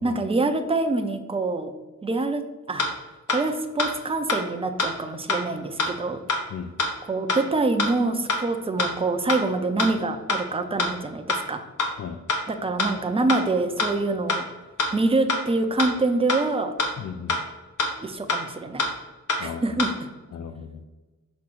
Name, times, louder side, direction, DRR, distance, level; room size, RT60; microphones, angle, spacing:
voice 1, 0.0-1.7 2.0-2.4 2.7-2.9 3.3-6.2 7.1-11.7 12.5-14.4 14.9-16.7 18.0-18.9 19.4-19.9, right 3 dB, 20° right, 6 dB, 0.6 m, -25 dB
sound 1, 2.8-2.9 3.3-3.4 3.8-3.9 4.3-4.4 4.8-4.9 5.3-5.4 5.8-5.9 6.3-6.4 6.8-6.9 7.3-7.4 7.8-7.9 8.3-8.4 8.8-8.9 9.3-9.4 9.8-9.9 10.3-10.4 10.8-10.9 11.3-11.4 11.8-11.9 12.3-12.4 12.8-12.9 13.3-13.4 13.8-13.9 14.3-14.4 14.8-14.9 15.3-15.4 15.8-15.9 16.3-16.4 16.8-16.9 17.3-17.4 17.8-17.9 18.3-18.4 18.8-18.9 19.3-19.4 19.8-19.9, left 3 dB, 85° left, 1.3 m, -24 dB
voice 2, 17.0-17.4 19.4-19.6 20.3-20.8, left 7 dB, 65° left, 7 dB, 0.5 m, -35 dB
6.2 x 3.5 x 6.1 m, 1.2 s
wide cardioid pair, 150°, 30 cm